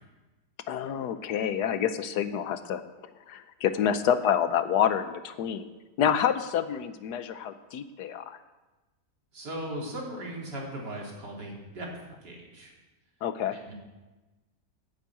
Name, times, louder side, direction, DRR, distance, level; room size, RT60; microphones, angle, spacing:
voice 1, 0.7-2.8 3.3-5.7 6.0-8.4 13.2-13.6, left 9 dB, 75° left, 11 dB, 1.3 m, -28 dB
voice 2, 9.3-11.9 12.2-12.7 13.5-13.7, right 1 dB, 85° right, -2 dB, 3.6 m, -38 dB
9.9 x 9.4 x 8.6 m, 1.2 s
omnidirectional pair, 1.8 m